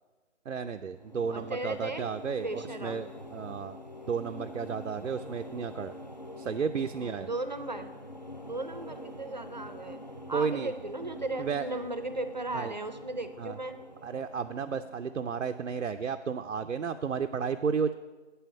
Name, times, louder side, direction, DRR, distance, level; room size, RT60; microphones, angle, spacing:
voice 1, 0.5-3.8 4.1-5.9 6.4-7.3 10.3-10.7 11.4-11.7 12.5-12.7 13.4-13.6 14.0-17.9, right 6 dB, 85° right, 7 dB, 0.5 m, -33 dB
sound 1, 0.7-16.1, left 1 dB, 40° left, 0.4 m, -46 dB
voice 2, 1.3-2.0 2.4-3.0 7.0-7.9 8.4-10.0 10.3-13.8, right 2 dB, 35° right, 10 dB, 0.5 m, -36 dB
8.3 x 5.6 x 7.4 m, 1.3 s
figure-of-eight pair, 160°, 37 cm